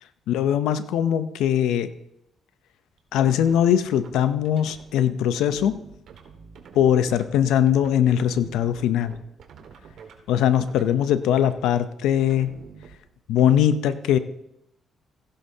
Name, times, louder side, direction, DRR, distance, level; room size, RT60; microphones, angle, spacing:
voice 1, 0.3-1.9 3.1-5.8 6.7-9.2 10.3-12.5 13.3-14.2, left 10 dB, 90° left, 12 dB, 0.6 m, -21 dB
sound 1, 3.0-4.8 5.3-10.2 10.6-11.2 11.5-11.8 12.2-13.5, right 7 dB, 70° right, 1.8 m, -46 dB
15.5 x 11.5 x 2.8 m, 0.80 s
cardioid pair, 90°, 0 cm